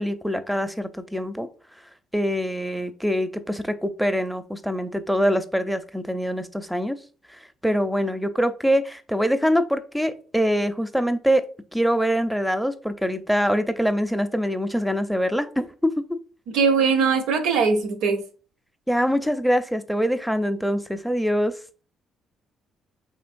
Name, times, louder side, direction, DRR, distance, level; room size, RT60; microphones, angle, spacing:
voice 1, 0.0-1.5 2.1-7.0 7.6-11.4 11.7-15.7 18.9-21.6, equal, ahead, 0.5 m, -24 dB
voice 2, 16.5-18.2, right 5 dB, 75° right, 0.6 m, -20 dB
3.8 x 3.0 x 2.5 m
supercardioid pair, 60°, 0 cm